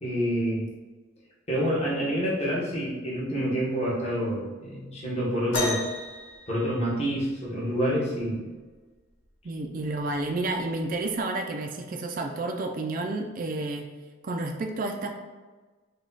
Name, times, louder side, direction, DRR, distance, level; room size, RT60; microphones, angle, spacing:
voice 1, 0.0-0.7 1.5-5.8 6.5-8.4, equal, 30° left, -6 dB, 1.3 m, -27 dB
sound 1, 5.5-7.4 9.1-9.2 10.0-10.2 11.1-11.2, left 1 dB, 65° left, 1.0 m, -33 dB
voice 2, 9.4-13.9 14.2-15.1, right 2 dB, 45° right, 3 dB, 0.4 m, -30 dB
5.0 x 2.3 x 3.9 m, 1.3 s
head